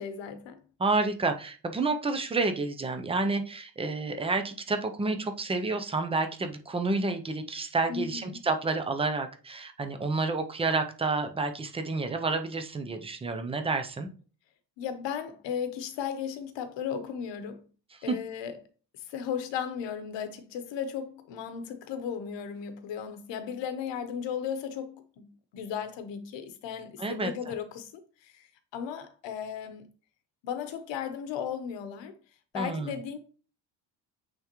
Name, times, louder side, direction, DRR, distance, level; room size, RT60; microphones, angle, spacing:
voice 1, 0.0-0.6 7.9-8.4 14.8-17.7 18.0-18.6 18.9-27.9 28.2-29.9 30.4-32.2 32.5-33.2, left 8 dB, 90° left, 1.0 m, -36 dB
voice 2, 0.8-14.1 18.1-18.2 27.0-27.5 32.5-32.9, right 3 dB, 15° right, 0.4 m, -29 dB
8.7 x 3.6 x 3.0 m
cardioid pair, 170°, 43 cm